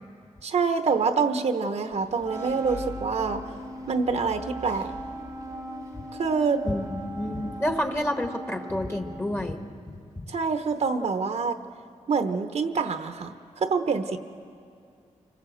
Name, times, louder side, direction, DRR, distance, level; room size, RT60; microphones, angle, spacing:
voice 1, 0.4-3.4 3.9-4.9 6.1-6.6 10.3-11.6 12.1-14.2, right 5 dB, 60° right, 8 dB, 0.9 m, -26 dB
Engine / Mechanisms, 1.9-7.8, left 3 dB, 70° left, 4.3 m, -44 dB
Wind instrument woodwind instrument, 2.2-9.9, right 1 dB, 25° right, 0.9 m, -40 dB
voice 2, 6.6-9.6, left 1 dB, 20° left, 5 dB, 1.3 m, -29 dB
26.0 x 19.5 x 7.9 m, 2.4 s
wide cardioid pair, 165°, 13 cm